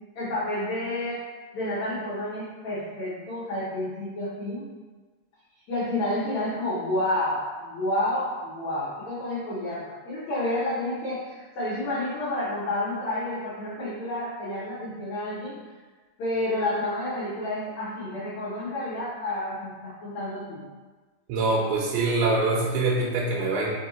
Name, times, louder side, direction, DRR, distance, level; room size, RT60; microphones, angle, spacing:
voice 1, 0.1-1.2 1.5-4.7 5.7-15.6 16.2-20.6, left 1 dB, 80° left, -10 dB, 1.6 m, -30 dB
voice 2, 21.3-23.7, right 3 dB, 85° right, -4 dB, 2.5 m, -24 dB
5.9 x 2.7 x 2.7 m, 1.3 s
omnidirectional pair, 4.5 m